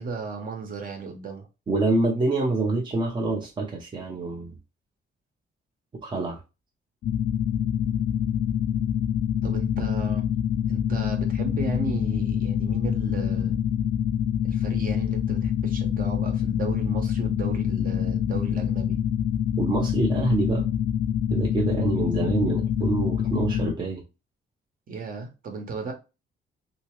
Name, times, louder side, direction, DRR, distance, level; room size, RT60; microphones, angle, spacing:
voice 1, 0.0-1.5 9.4-10.2 10.7-13.6 14.4-19.0 24.9-25.9, right 4 dB, 50° right, 1.0 m, -35 dB
voice 2, 1.7-4.5 6.0-6.4 19.6-20.7 21.3-24.0, right 3 dB, 25° right, 0.6 m, -26 dB
sound 1, 7.0-23.7, left 9 dB, 60° left, 0.4 m, -26 dB
3.3 x 2.8 x 3.0 m
cardioid pair, 160°, 19 cm